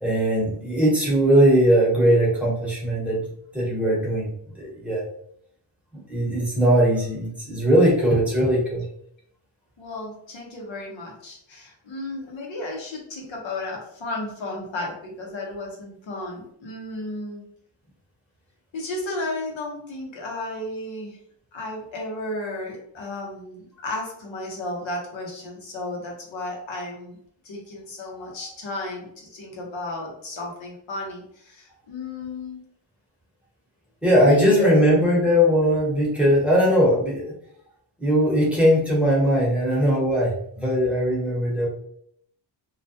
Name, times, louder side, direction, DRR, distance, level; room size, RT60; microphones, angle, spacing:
voice 1, 0.0-3.3 3.5-5.0 6.1-8.8 34.0-37.3 38.0-41.7, equal, 5° right, -5 dB, 1.0 m, -20 dB
voice 2, 9.8-17.5 18.7-21.2 21.5-27.2 27.4-32.6 34.2-35.3, left 2 dB, 80° left, -1 dB, 0.9 m, -33 dB
2.4 x 2.1 x 2.7 m, 0.68 s
wide cardioid pair, 105°, 46 cm